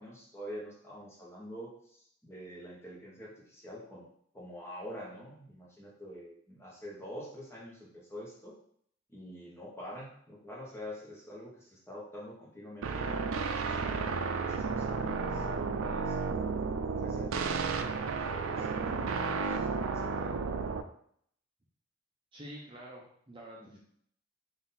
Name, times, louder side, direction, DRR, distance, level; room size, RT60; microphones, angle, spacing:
voice 1, 0.0-4.1 4.3-8.6 9.1-16.4 16.9-20.6 23.6-23.8, equal, 15° left, -4 dB, 1.0 m, -47 dB
sound 1, 12.8-20.8, right 4 dB, 80° right, 0.4 m, -32 dB
voice 2, 22.3-23.8, equal, 25° right, -3 dB, 0.7 m, -47 dB
3.9 x 2.6 x 4.1 m, 0.65 s
head